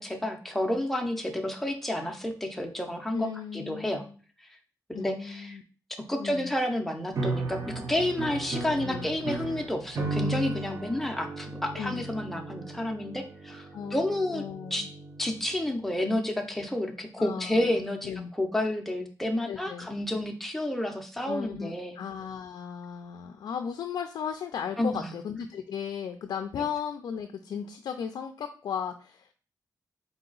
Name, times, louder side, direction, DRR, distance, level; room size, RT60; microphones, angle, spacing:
voice 1, 0.0-4.0 4.9-5.6 6.1-14.4 14.7-14.9 15.2-22.0 24.8-25.1, left 1 dB, 5° left, 3 dB, 0.5 m, -30 dB
voice 2, 3.1-4.2 4.9-5.6 6.2-6.5 8.8-9.3 11.8-12.0 13.7-14.9 17.2-18.3 19.4-19.9 21.2-29.3, left 7 dB, 75° left, 6 dB, 0.3 m, -36 dB
sound 1, 7.1-15.5, right 2 dB, 45° right, 0.6 m, -35 dB
4.0 x 2.8 x 3.8 m, 0.39 s
wide cardioid pair, 150°, 7 cm